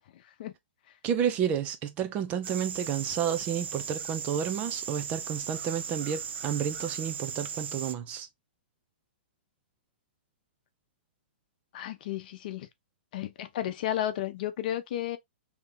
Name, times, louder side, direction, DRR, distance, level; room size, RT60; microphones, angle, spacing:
voice 1, 1.0-8.3, right 8 dB, 25° right, 0.4 m, -31 dB
sound 1, 2.4-7.9, right 7 dB, 85° right, 0.5 m, -37 dB
voice 2, 11.7-12.7 13.1-15.2, left 12 dB, 55° left, 0.7 m, -33 dB
2.8 x 2.8 x 3.7 m
hypercardioid pair, 145°, 6 cm